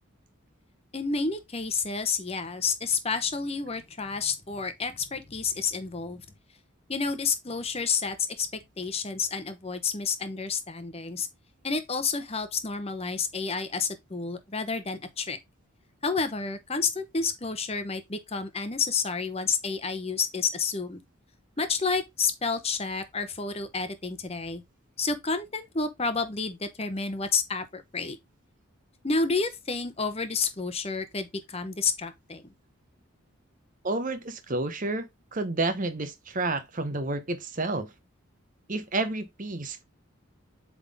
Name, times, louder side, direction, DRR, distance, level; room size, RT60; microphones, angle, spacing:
voice 1, 0.9-6.2 6.9-11.3 11.6-15.4 16.0-21.0 21.6-24.6 25.0-28.2 29.0-32.4, left 5 dB, 30° left, 0.9 m, -30 dB
voice 2, 33.8-37.9 38.7-39.8, right 2 dB, 40° right, 0.8 m, -30 dB
7.9 x 3.7 x 3.5 m
head